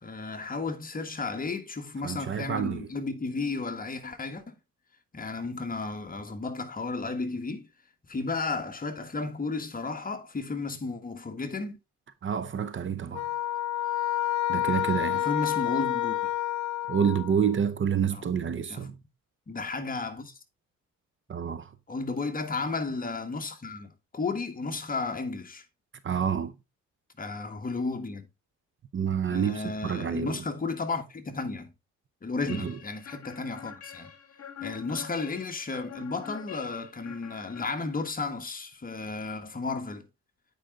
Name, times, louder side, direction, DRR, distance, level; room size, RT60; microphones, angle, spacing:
voice 1, 0.0-4.6 5.1-7.7 8.1-11.8 15.1-16.2 18.1-18.2 18.7-18.8 19.5-20.4 21.9-25.6 27.2-28.3 29.3-31.7 32.2-34.1 34.6-40.1, left 3 dB, 30° left, 1.5 m, -33 dB
voice 2, 2.0-2.9 12.2-13.3 14.5-15.2 16.9-19.0 21.3-21.7 26.0-26.5 28.9-30.4 32.5-32.8, right 7 dB, 40° right, 0.8 m, -28 dB
sound 1, 13.1-17.6, left 12 dB, 75° left, 0.8 m, -29 dB
sound 2, 32.5-38.3, left 8 dB, 55° left, 1.6 m, -45 dB
8.9 x 5.1 x 3.7 m
cardioid pair, 90°, 30 cm